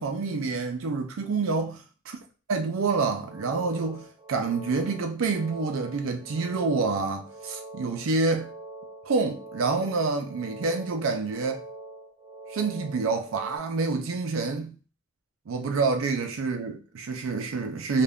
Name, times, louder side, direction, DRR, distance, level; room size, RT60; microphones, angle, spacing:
voice 1, 0.0-1.8 2.5-8.5 9.0-11.6 12.5-14.8 15.5-18.0, right 4 dB, 80° right, 0.5 m, -27 dB
sound 1, 3.2-13.6, right 2 dB, 25° right, 1.3 m, -44 dB
3.4 x 2.5 x 2.3 m
head